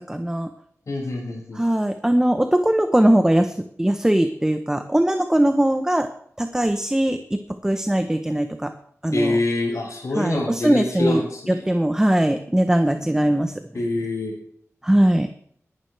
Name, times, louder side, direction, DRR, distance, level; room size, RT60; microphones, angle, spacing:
voice 1, 0.1-0.5 1.5-6.1 6.4-8.7 9.0-9.4 10.1-13.8 14.8-15.3, right 1 dB, 10° right, 7 dB, 0.8 m, -20 dB
voice 2, 0.9-1.6 9.1-11.6 13.7-14.3, left 2 dB, 80° left, -1 dB, 5.8 m, -25 dB
20.5 x 11.0 x 3.3 m, 0.67 s
wide cardioid pair, 95°, 5 cm